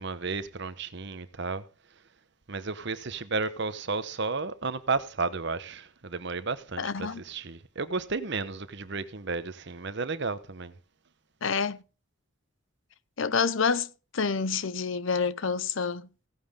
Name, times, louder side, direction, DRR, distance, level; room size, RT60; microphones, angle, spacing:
voice 1, 0.0-1.7 2.5-10.7, right 4 dB, 55° right, 1.0 m, -33 dB
voice 2, 6.8-7.2 11.4-11.8 13.2-13.9 14.1-16.1, left 5 dB, 65° left, 0.7 m, -28 dB
16.5 x 9.3 x 3.7 m
head